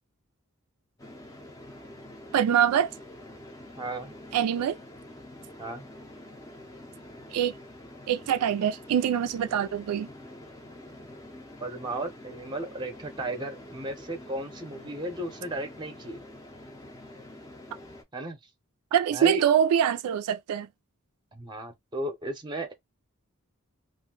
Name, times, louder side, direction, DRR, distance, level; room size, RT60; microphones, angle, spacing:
sound 1, 1.0-18.0, left 1 dB, 15° left, 0.5 m, -46 dB
voice 1, 2.3-2.9 4.3-4.8 7.3-7.5 8.1-10.1 18.9-20.7, right 9 dB, 85° right, 0.3 m, -24 dB
voice 2, 3.8-4.1 5.6-5.9 11.6-16.2 18.1-18.4 19.1-19.4 21.3-22.8, right 1 dB, 20° right, 0.7 m, -35 dB
2.5 x 2.1 x 3.7 m
head